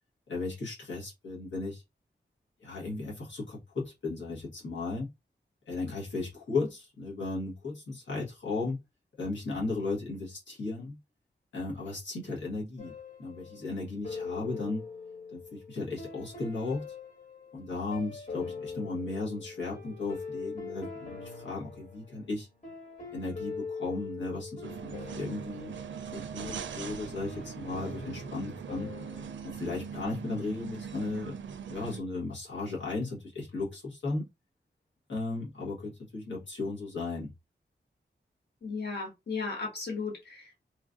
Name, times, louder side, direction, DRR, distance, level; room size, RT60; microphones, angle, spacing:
voice 1, 0.3-1.8 2.6-5.1 5.7-8.8 9.2-11.0 11.5-12.9 13.2-14.8 15.3-16.8 17.5-22.5 23.1-25.7 26.0-28.9 29.4-31.4 31.7-34.3 35.1-37.3, left 3 dB, 85° left, 1.2 m, -35 dB
sound 1, 12.8-13.7 14.0-29.4, left 4 dB, 40° left, 1.3 m, -43 dB
sound 2, 24.6-32.0, right 7 dB, 85° right, 0.4 m, -41 dB
voice 2, 38.6-40.6, left 4 dB, 65° left, 1.4 m, -35 dB
3.1 x 2.4 x 2.4 m
wide cardioid pair, 80°, 19 cm